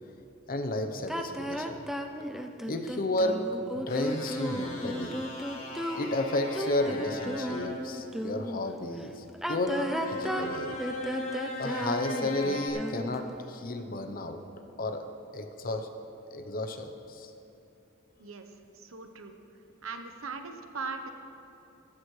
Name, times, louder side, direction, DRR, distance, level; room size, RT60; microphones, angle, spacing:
voice 1, 0.5-1.9 2.3-5.2 6.0-10.8 11.6-14.4 14.7-15.1 15.3-15.9 16.3-17.3, left 1 dB, 45° left, 7 dB, 0.8 m, -32 dB
sound 1, 1.1-8.6 9.3-13.3, equal, ahead, 0.5 m, -34 dB
sound 2, 3.9-7.7 9.6-12.7, left 1 dB, 75° left, 2.3 m, -38 dB
voice 2, 18.2-19.3 19.8-21.1, right 4 dB, 80° right, 7 dB, 0.9 m, -40 dB
15.0 x 13.5 x 3.2 m, 2.9 s
head